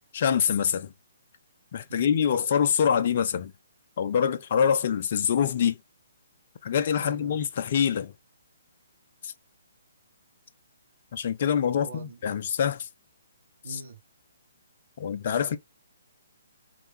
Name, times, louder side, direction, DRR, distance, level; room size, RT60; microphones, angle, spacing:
voice 1, 0.1-0.9 1.7-3.5 4.0-5.8 6.6-8.1 9.2-9.3 11.1-12.9 13.7-13.8 15.0-15.6, left 8 dB, 45° left, 0.4 m, -25 dB
voice 2, 7.0-7.3 11.7-12.2 13.6-14.0, right 3 dB, 55° right, 1.2 m, -42 dB
3.2 x 2.4 x 2.7 m
figure-of-eight pair, 130°, 0 cm